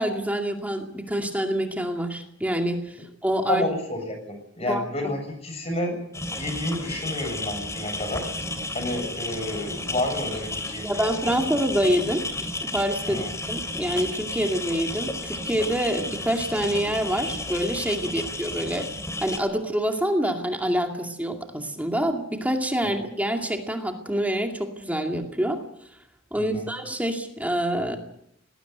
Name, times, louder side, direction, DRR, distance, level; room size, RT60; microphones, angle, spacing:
voice 1, 0.0-3.6 4.6-4.8 10.8-12.2 12.6-18.8 19.2-25.6 26.3-28.0, equal, 10° right, 3 dB, 2.3 m, -26 dB
voice 2, 3.5-5.9 6.4-8.3 8.7-11.6 13.1-13.3 22.8-22.9 26.4-26.7, left 1 dB, 35° left, 5 dB, 7.2 m, -30 dB
sound 1, 6.1-19.4, left 2 dB, 15° left, 2.8 m, -33 dB
19.5 x 17.5 x 9.5 m, 0.74 s
head